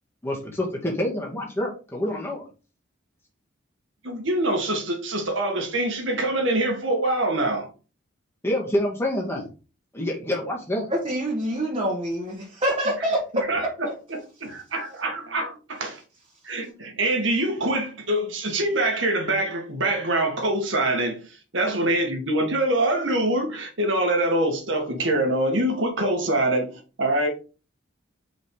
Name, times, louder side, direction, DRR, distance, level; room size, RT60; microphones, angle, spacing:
voice 1, 0.2-2.5 8.4-9.5 9.9-10.9, left 1 dB, 10° left, 1.9 m, -27 dB
voice 2, 4.0-7.7 12.9-13.0 13.3-16.0 16.4-27.3, right 1 dB, 75° right, 1.8 m, -25 dB
voice 3, 11.0-13.2, right 1 dB, 25° right, 1.6 m, -26 dB
5.3 x 5.0 x 3.7 m
head